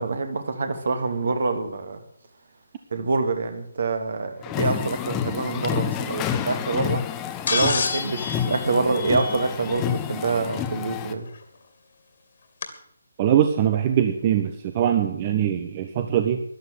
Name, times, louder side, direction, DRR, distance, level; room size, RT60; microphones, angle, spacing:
voice 1, 0.0-2.0 2.9-7.1 7.5-11.3, right 3 dB, 55° right, 2.4 m, -26 dB
sound 1, 4.4-11.1, left 9 dB, 15° left, 1.0 m, -29 dB
Sword Clash and Slide, 7.5-9.8 11.4-11.5 12.6-12.7, left 5 dB, 50° left, 2.4 m, -28 dB
voice 2, 13.2-16.4, right 10 dB, 30° right, 1.1 m, -22 dB
13.0 x 11.0 x 8.2 m
figure-of-eight pair, 145°, 0 cm